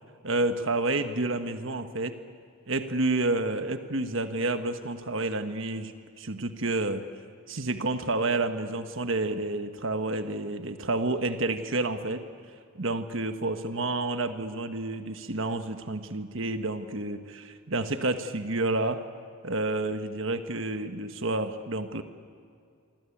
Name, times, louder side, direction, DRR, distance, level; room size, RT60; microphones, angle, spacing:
voice 1, 0.2-2.2 2.7-5.9 6.2-7.0 7.5-12.2 12.7-19.0 19.4-22.0, right 2 dB, 65° right, 8 dB, 1.4 m, -29 dB
26.0 x 24.5 x 8.6 m, 2.3 s
head